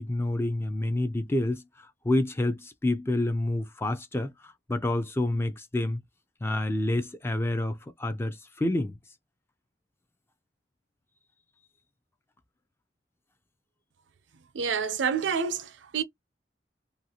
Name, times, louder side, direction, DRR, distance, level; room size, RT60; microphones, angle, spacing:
voice 1, 0.0-1.6 2.0-6.0 6.4-8.9, left 1 dB, 15° left, 0.4 m, -28 dB
voice 2, 14.5-16.0, right 6 dB, 90° right, 0.5 m, -28 dB
2.5 x 2.3 x 2.8 m
head